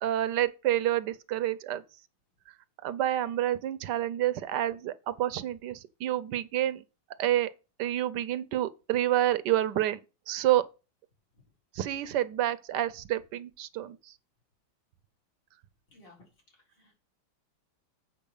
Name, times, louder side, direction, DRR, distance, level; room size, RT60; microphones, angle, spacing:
voice 1, 0.0-1.8 2.8-6.8 7.2-7.5 7.8-10.0 10.3-10.6 11.7-14.0, right 13 dB, 70° right, 1.1 m, -28 dB
voice 2, 15.9-16.2 16.5-17.0, left 2 dB, 65° left, 4.8 m, -57 dB
8.2 x 4.5 x 7.0 m
omnidirectional pair, 2.1 m